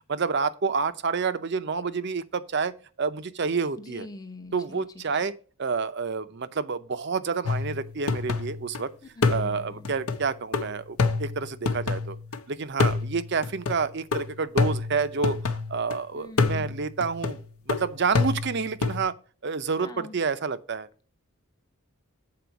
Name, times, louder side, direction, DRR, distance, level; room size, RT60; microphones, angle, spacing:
voice 1, 0.1-4.1 4.5-5.3 5.6-8.9 9.3-12.2 12.5-17.4 17.7-19.1 19.4-20.9, right 5 dB, 50° right, 0.6 m, -29 dB
voice 2, 3.8-4.8 9.2-9.7 16.1-16.7 19.8-20.1, left 2 dB, 15° left, 0.8 m, -43 dB
sound 1, 7.4-8.8 9.2-12.4 12.8-16.0 16.4-19.0, left 4 dB, 80° left, 1.0 m, -28 dB
7.7 x 4.4 x 6.9 m
head